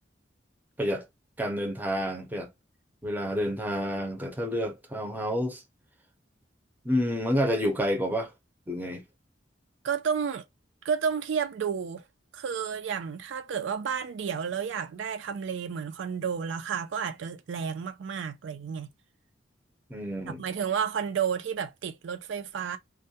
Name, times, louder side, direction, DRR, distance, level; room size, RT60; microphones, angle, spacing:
voice 1, 1.4-2.5 3.0-5.6 6.8-8.3 8.7-9.0 19.9-20.4, equal, 10° right, 0.5 m, -29 dB
voice 2, 9.8-10.5 10.8-12.0 12.3-18.9 20.3-22.8, right 7 dB, 75° right, 0.4 m, -31 dB
2.3 x 2.1 x 2.6 m
head